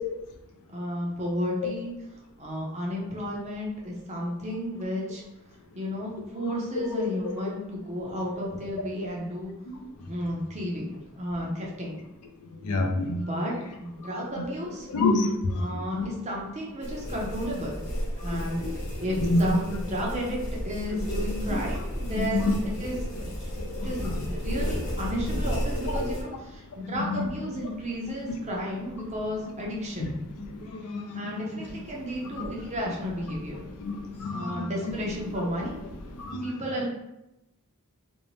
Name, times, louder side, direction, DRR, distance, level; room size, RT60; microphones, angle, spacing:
voice 1, 0.7-1.9 2.4-5.2 5.7-9.5 10.0-11.9 13.3-13.5 13.8-14.9 15.6-17.8 18.2-23.5 23.8-30.2 31.1-33.7 34.3-35.8 36.4-36.9, equal, 30° right, -2 dB, 0.6 m, -33 dB
voice 2, 12.5-13.3 14.4-14.5 14.9-15.7 16.0-16.1 18.2-18.7 19.2-19.4 21.5-21.6 22.1-22.5 23.6-24.2 26.8-27.2 30.0-30.1 30.4-31.7 32.4-32.5 33.8-34.9 36.1-36.5, left 2 dB, 75° left, 2 dB, 0.4 m, -29 dB
sound 1, 16.8-26.2, equal, 35° left, 0.7 m, -32 dB
2.6 x 2.1 x 3.0 m, 0.89 s
head